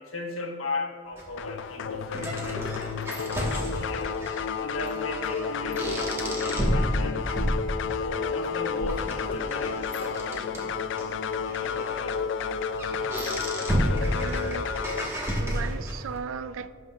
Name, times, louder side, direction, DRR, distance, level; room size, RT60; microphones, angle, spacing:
voice 1, 0.0-7.3 8.0-10.7 11.6-12.6 13.8-14.3, left 3 dB, 85° left, 1.2 m, -38 dB
sound 1, 1.2-16.2, equal, 15° right, 1.3 m, -32 dB
sound 2, 1.4-15.1, left 6 dB, 60° left, 0.3 m, -31 dB
voice 2, 14.0-14.7 15.4-16.7, right 6 dB, 75° right, 0.3 m, -36 dB
17.0 x 5.7 x 2.4 m
head